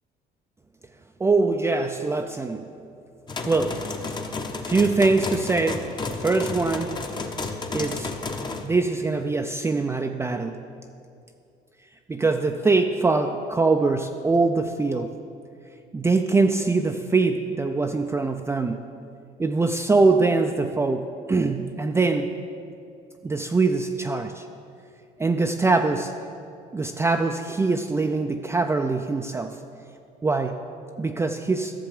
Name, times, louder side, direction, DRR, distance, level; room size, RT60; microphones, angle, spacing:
voice 1, 1.2-2.7 3.4-3.8 4.7-5.8 6.2-6.9 7.7-8.1 8.6-10.7 12.1-15.1 15.9-18.9 19.4-22.3 23.2-24.5 25.2-26.1 26.7-29.6 30.2-30.5 31.0-31.7, right 3 dB, 15° right, 4 dB, 0.4 m, -23 dB
sound 1, 3.3-8.7, left 3 dB, 25° left, 0.9 m, -32 dB
13.5 x 6.8 x 5.0 m, 2.4 s
cardioid pair, 110°, 17 cm